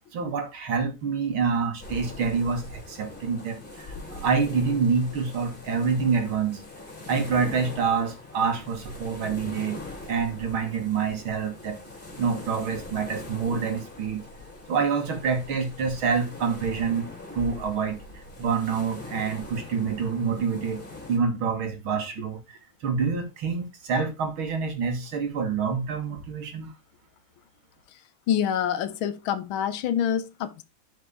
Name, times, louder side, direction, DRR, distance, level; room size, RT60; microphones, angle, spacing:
voice 1, 0.1-6.6 7.1-9.8 10.1-11.8 12.2-14.2 14.7-17.1 17.3-20.8 21.1-26.7, right 5 dB, 90° right, 2.7 m, -27 dB
sound 1, 1.8-21.2, left 2 dB, 25° left, 3.5 m, -42 dB
voice 2, 28.3-30.6, left 9 dB, 85° left, 1.7 m, -26 dB
11.0 x 5.7 x 3.7 m
omnidirectional pair, 2.2 m